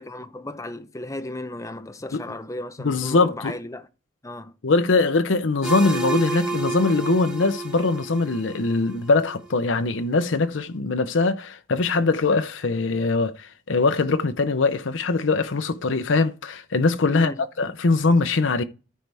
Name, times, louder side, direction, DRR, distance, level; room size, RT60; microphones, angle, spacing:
voice 1, 0.0-3.9 4.2-4.5 17.1-17.4, left 1 dB, 15° left, 0.8 m, -35 dB
voice 2, 2.8-3.5 4.6-17.3 17.6-18.6, left 3 dB, 85° left, 0.7 m, -22 dB
sound 1, 5.6-9.3, right 2 dB, 5° right, 1.7 m, -30 dB
14.0 x 4.6 x 3.4 m
head